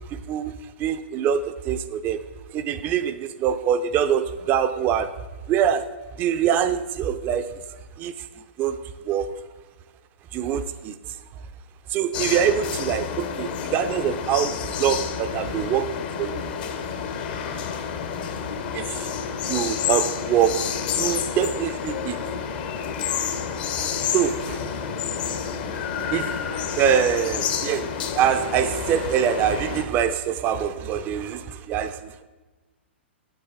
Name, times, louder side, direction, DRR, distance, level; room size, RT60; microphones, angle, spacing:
voice 1, 0.1-2.2 2.5-5.2 5.5-7.6 8.0-8.3 8.6-8.8 9.0-9.4 10.3-11.1 11.9-16.5 18.7-19.1 19.4-22.2 23.8-24.6 26.1-26.4 26.7-32.2, right 9 dB, 30° right, 0.5 m, -24 dB
sound 1, 12.1-29.8, left 7 dB, 50° left, 1.0 m, -29 dB
8.1 x 8.1 x 4.7 m
hypercardioid pair, 115°, 6 cm